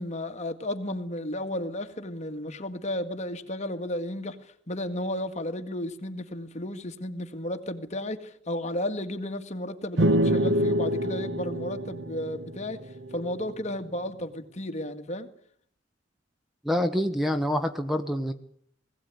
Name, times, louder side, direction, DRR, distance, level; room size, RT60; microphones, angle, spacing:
voice 1, 0.0-12.8 13.1-15.3, left 1 dB, 40° left, 7 dB, 2.0 m, -33 dB
sound 1, 10.0-13.5, equal, 75° right, 1.1 m, -26 dB
voice 2, 16.6-18.3, equal, ahead, 8 dB, 1.1 m, -26 dB
20.5 x 17.0 x 9.5 m, 0.63 s
head